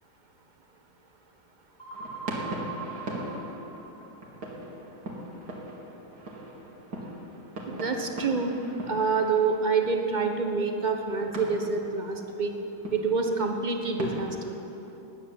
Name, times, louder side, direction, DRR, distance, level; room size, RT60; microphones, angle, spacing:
sound 1, 1.8-4.4, right 4 dB, 25° left, 4.2 m, -41 dB
sound 2, 1.9-14.5, right 1 dB, 70° right, 2.8 m, -40 dB
voice 1, 7.6-8.5 8.9-12.5 12.9-14.6, right 4 dB, 30° right, 4 dB, 1.1 m, -27 dB
14.0 x 9.6 x 9.2 m, 3.0 s
omnidirectional pair, 1.8 m